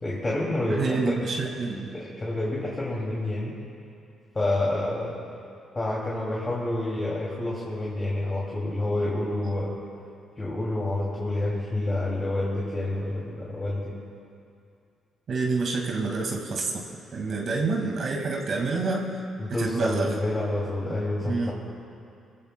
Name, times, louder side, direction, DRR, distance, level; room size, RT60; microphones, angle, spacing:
voice 1, 0.0-1.1 1.9-3.5 4.3-5.2 5.7-9.8 10.4-13.9 19.4-21.5, left 1 dB, 25° left, -5 dB, 2.5 m, -28 dB
voice 2, 0.7-1.9 15.3-16.8 17.1-19.1 19.6-20.2 21.2-21.5, right 3 dB, 55° right, -1 dB, 1.9 m, -27 dB
22.5 x 15.5 x 2.2 m, 2.5 s
cardioid pair, 90°, 0 cm